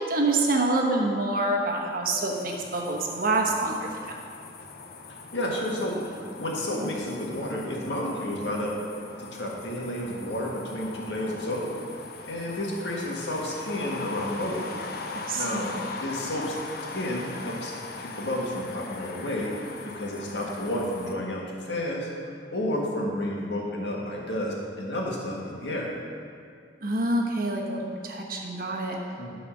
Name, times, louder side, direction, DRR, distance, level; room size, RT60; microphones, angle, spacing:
voice 1, 0.0-3.9 15.1-15.7 26.8-29.0, right 2 dB, 55° right, 1 dB, 1.1 m, -26 dB
sound 1, 2.3-21.1, left 3 dB, 60° left, 0.7 m, -40 dB
voice 2, 5.3-8.8 9.2-11.7 12.3-14.7 15.3-16.6 16.9-17.7 18.0-19.5 19.9-21.4 21.7-22.1 22.5-25.9 29.2-29.4, left 1 dB, 80° left, -2 dB, 1.7 m, -31 dB
11.5 x 4.2 x 6.1 m, 2.2 s
head